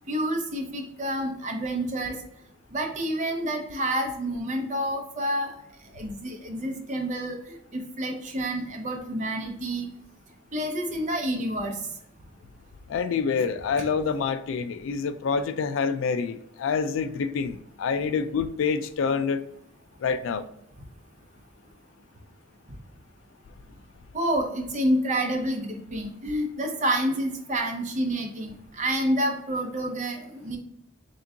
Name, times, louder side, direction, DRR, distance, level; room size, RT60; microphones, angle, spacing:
voice 1, 0.1-2.2 2.7-5.5 5.9-9.9 10.5-11.8 24.1-30.6, right 1 dB, 40° right, 2 dB, 0.6 m, -28 dB
voice 2, 12.9-19.4 20.0-20.5, left 5 dB, 70° left, 12 dB, 0.3 m, -27 dB
3.6 x 2.7 x 3.4 m, 0.76 s
head